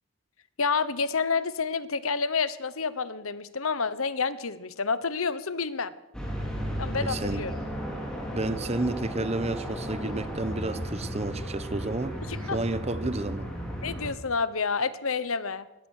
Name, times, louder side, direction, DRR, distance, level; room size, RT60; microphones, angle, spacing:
voice 1, 0.6-5.9 6.8-7.6 12.3-12.6 13.8-15.7, left 5 dB, 80° left, 1.1 m, -29 dB
sound 1, 6.1-14.1, equal, 5° left, 5.1 m, -34 dB
voice 2, 7.0-7.5 8.3-12.2 12.5-13.5, right 2 dB, 30° right, 0.9 m, -31 dB
22.5 x 18.0 x 6.6 m
head